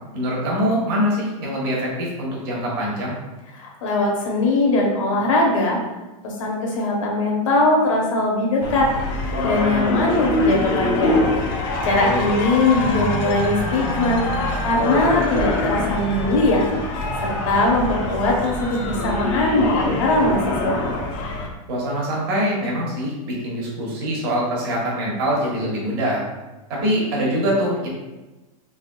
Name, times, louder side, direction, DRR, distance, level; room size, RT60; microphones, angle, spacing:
voice 1, 0.1-3.1 12.0-12.2 21.7-26.2 26.7-27.9, equal, 40° right, -4 dB, 0.9 m, -23 dB
voice 2, 3.5-5.8 6.2-8.9 9.4-11.2 11.8-14.2 14.6-16.6 17.2-20.8, left 2 dB, 60° left, -1 dB, 0.8 m, -20 dB
sound 1, 8.6-21.5, left 2 dB, 40° left, 0.5 m, -24 dB
3.4 x 3.1 x 2.2 m, 1.1 s
supercardioid pair, 180°, 18 cm